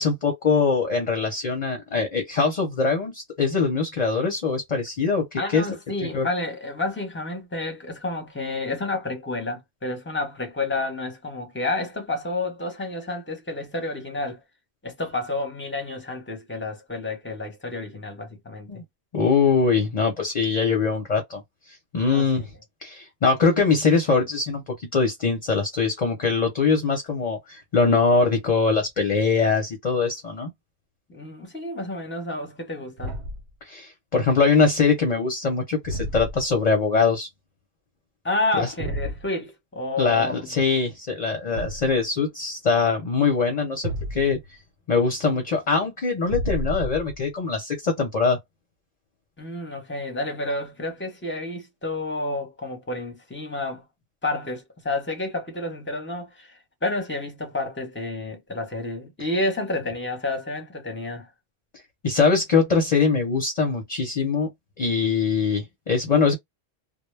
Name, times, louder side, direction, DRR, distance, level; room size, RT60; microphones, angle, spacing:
voice 1, 0.0-5.7 6.1-6.3 18.7-18.8 19.1-21.4 21.9-22.4 22.8-30.5 33.7-37.3 38.6-38.7 40.0-44.4 44.9-48.4 62.0-64.5 64.8-66.3, left 4 dB, 45° left, 0.7 m, -22 dB
voice 2, 5.3-14.4 14.8-18.7 22.0-22.4 31.1-33.2 38.2-40.3 49.4-53.8 54.2-61.3, left 2 dB, 10° left, 0.8 m, -30 dB
Thump thud, 33.0-33.5 35.8-36.6 38.8-39.2 41.5-42.0 43.8-44.5 46.3-47.2, equal, 85° right, 1.0 m, -31 dB
2.2 x 2.0 x 3.1 m
omnidirectional pair, 1.1 m